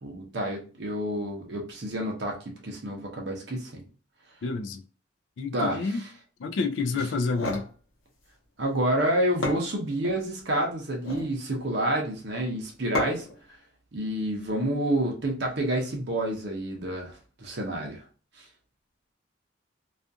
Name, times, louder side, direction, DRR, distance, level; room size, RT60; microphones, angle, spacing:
voice 1, 0.0-3.8 5.5-6.1 8.6-13.3 13.9-18.0 18.4-18.5, right 1 dB, 60° right, 0.6 m, -29 dB
voice 2, 4.4-4.8 5.4-6.0 6.4-7.7, left 4 dB, 75° left, 0.3 m, -29 dB
sound 1, 7.1-7.7 9.0-9.1 9.4-10.2 10.9-11.3 12.9-13.4, left 2 dB, 90° left, 0.8 m, -32 dB
2.4 x 2.3 x 2.6 m
head